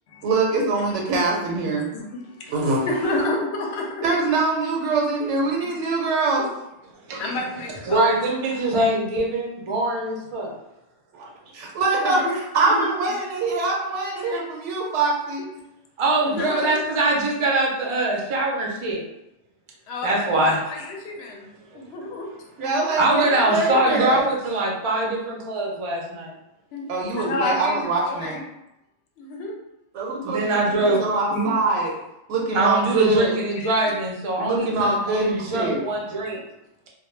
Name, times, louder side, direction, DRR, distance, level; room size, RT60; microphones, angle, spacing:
voice 1, 0.2-1.9 2.5-3.1 4.0-6.5 7.1-7.2 8.6-8.7 11.1-12.2 12.5-15.5 16.3-16.5 21.7-21.8 22.6-24.3 26.9-28.4 29.9-31.9 32.3-33.4 34.4-35.8, right 3 dB, 90° right, -1 dB, 0.9 m, -24 dB
voice 2, 1.9-2.5 2.8-4.0 5.6-5.8 7.2-8.2 12.0-12.3 12.7-12.9 14.2-14.4 16.2-16.8 19.9-22.3 26.7-28.4 29.2-29.5 33.6-33.9, left 2 dB, 70° left, 0 dB, 0.8 m, -30 dB
voice 3, 7.9-10.5 16.0-19.0 20.0-20.6 23.0-26.3 30.2-31.0 31.3-31.5 32.5-36.4, right 2 dB, 45° right, -2 dB, 0.4 m, -23 dB
2.1 x 2.0 x 3.0 m, 0.88 s
omnidirectional pair, 1.2 m